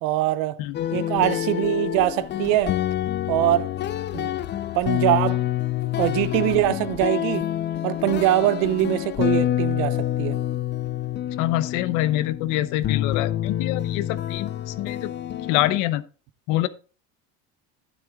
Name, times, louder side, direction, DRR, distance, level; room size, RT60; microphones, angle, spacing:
voice 1, 0.0-0.6 0.9-2.7 3.3-3.7 4.1-4.3 4.7-5.4 6.0-7.5 7.8-10.4, right 14 dB, 75° right, 0.7 m, -23 dB
voice 2, 0.6-1.0 11.4-15.1 15.5-16.0 16.5-16.7, left 15 dB, 75° left, 0.8 m, -25 dB
sound 1, 0.7-15.8, left 12 dB, 35° left, 0.5 m, -27 dB
12.0 x 9.7 x 2.4 m
cardioid pair, 120°, 31 cm